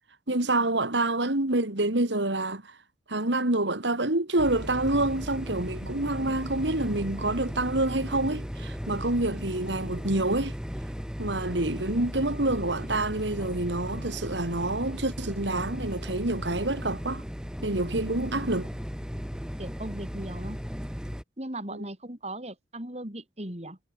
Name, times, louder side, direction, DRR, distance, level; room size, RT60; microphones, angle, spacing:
voice 1, 0.3-2.8 3.1-10.5 11.2-17.2 17.6-18.7 21.7-21.8, right 2 dB, 85° right, 2.9 m, -27 dB
sound 1, 4.4-21.2, equal, 5° right, 2.5 m, -36 dB
voice 2, 19.6-20.6 21.4-23.8, right 1 dB, 35° right, 4.4 m, -38 dB
head